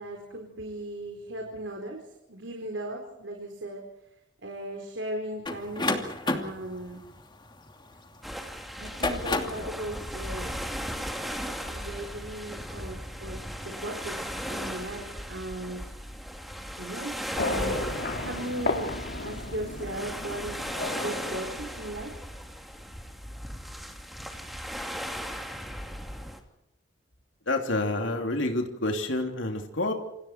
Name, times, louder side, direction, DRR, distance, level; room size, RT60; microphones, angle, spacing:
voice 1, 0.0-3.8 4.4-7.0 8.8-10.5 11.4-15.9 16.8-17.8 18.2-18.9 19.2-20.6 21.0-22.1, right 1 dB, 75° right, 1 dB, 4.4 m, -37 dB
sound 1, 5.5-8.2 8.8-9.7, left 2 dB, 25° left, 2.7 m, -30 dB
sound 2, 8.2-26.4, equal, ahead, 2.9 m, -37 dB
sound 3, 17.4-22.2, left 2 dB, 60° left, 2.6 m, -33 dB
voice 2, 27.5-29.9, left 2 dB, 85° left, 3 dB, 3.1 m, -28 dB
28.5 x 26.5 x 4.5 m, 0.87 s
head